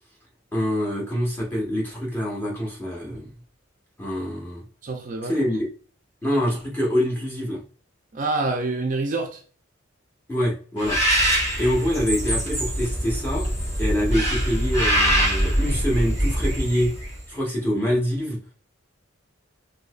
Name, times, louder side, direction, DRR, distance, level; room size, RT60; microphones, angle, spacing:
voice 1, 0.5-3.3 4.0-4.6 5.2-5.7 6.2-7.6 10.3-11.0 11.6-13.5 13.8-16.9 17.3-18.4, equal, 10° left, 1.0 m, -25 dB
voice 2, 4.8-5.5 8.1-9.4, right 3 dB, 40° right, 0.4 m, -27 dB
Bird, 10.8-17.2, equal, 30° left, 1.3 m, -23 dB
4.0 x 2.8 x 2.3 m
head